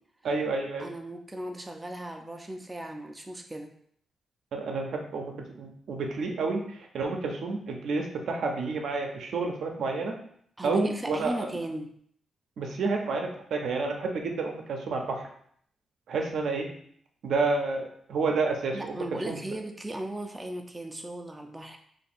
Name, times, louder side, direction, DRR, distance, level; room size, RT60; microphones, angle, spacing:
voice 1, 0.2-0.9 4.5-10.2 10.6-11.5 12.6-15.3 16.1-16.7 17.2-19.4, right 3 dB, 75° right, 2 dB, 0.6 m, -30 dB
voice 2, 0.8-3.7 10.6-11.9 18.7-21.8, right 1 dB, 15° right, 3 dB, 0.4 m, -37 dB
2.8 x 2.5 x 4.1 m, 0.65 s
cardioid pair, 75°, 0 cm